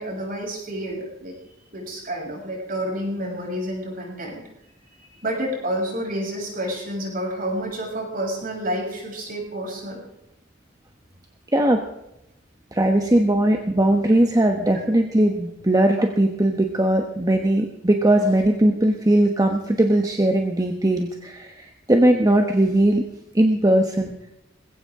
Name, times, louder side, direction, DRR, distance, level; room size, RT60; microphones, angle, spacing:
voice 1, 0.0-1.4 1.7-4.4 5.0-10.0, right 1 dB, 50° right, 0 dB, 7.1 m, -29 dB
voice 2, 12.7-23.0 23.3-24.1, right 1 dB, 20° right, 3 dB, 1.1 m, -19 dB
21.0 x 16.5 x 3.8 m, 0.85 s
head